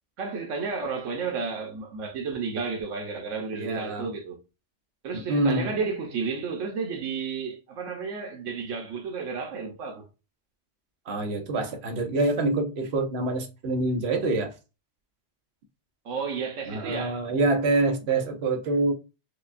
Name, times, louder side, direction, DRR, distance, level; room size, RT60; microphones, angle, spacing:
voice 1, 0.2-4.4 5.0-10.0 16.0-17.2, right 5 dB, 85° right, 1.1 m, -32 dB
voice 2, 3.5-4.1 5.3-5.7 11.1-14.5 16.7-18.9, right 2 dB, 60° right, 1.0 m, -26 dB
4.9 x 2.2 x 2.5 m
omnidirectional pair, 1.2 m